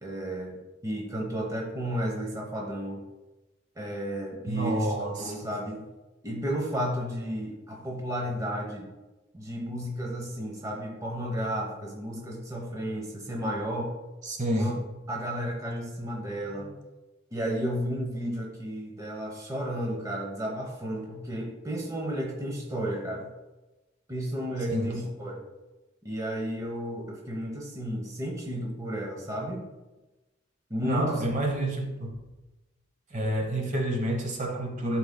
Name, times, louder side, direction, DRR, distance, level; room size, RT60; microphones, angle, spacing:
voice 1, 0.0-3.0 3.8-4.9 5.2-5.9 6.2-8.9 9.3-13.9 14.5-14.7 15.1-16.8 17.3-23.3 24.1-25.4 26.0-29.6 30.7-31.2, equal, 20° right, -1 dB, 1.0 m, -32 dB
voice 2, 4.5-5.3 14.2-14.8 24.7-24.9 30.8-32.2 33.1-35.0, right 1 dB, 40° right, 1 dB, 1.0 m, -28 dB
11.5 x 4.4 x 2.2 m, 1.1 s
head